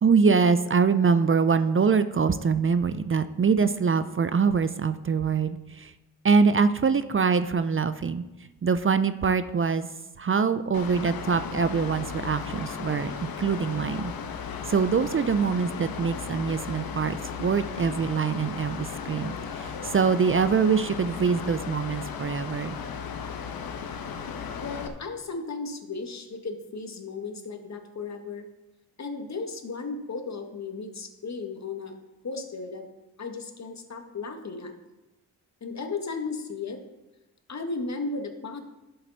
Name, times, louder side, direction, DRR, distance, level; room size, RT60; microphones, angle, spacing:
voice 1, 0.0-5.9 6.2-8.2 8.6-9.9 10.2-14.1 14.7-22.8, right 5 dB, 35° right, 12 dB, 0.6 m, -24 dB
Mechanical fan, 10.7-24.9, left 6 dB, 70° left, 1.2 m, -36 dB
voice 2, 24.6-28.5 29.0-32.0 32.2-32.9 33.2-34.7 35.6-36.8 37.5-38.6, left 4 dB, 45° left, 5 dB, 1.8 m, -35 dB
11.0 x 7.7 x 4.2 m, 1.0 s
supercardioid pair, 45°, 38 cm